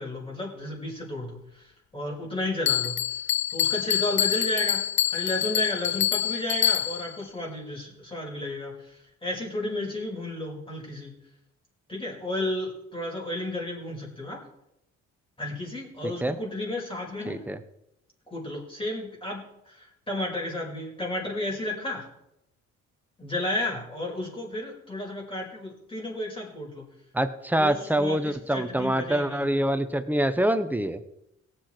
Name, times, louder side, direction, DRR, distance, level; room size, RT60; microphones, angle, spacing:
voice 1, 0.0-3.0 3.5-4.8 5.1-11.1 11.9-14.4 15.4-17.4 18.3-22.1 23.2-26.8 27.6-29.5, left 1 dB, 20° left, -2 dB, 5.4 m, -33 dB
Bell, 2.7-7.2, left 11 dB, 40° left, 0.4 m, -26 dB
voice 2, 16.0-16.4 17.3-17.6 27.1-31.0, right 1 dB, 5° right, 9 dB, 1.1 m, -25 dB
18.0 x 8.1 x 4.6 m, 0.82 s
cardioid pair, 90°, 30 cm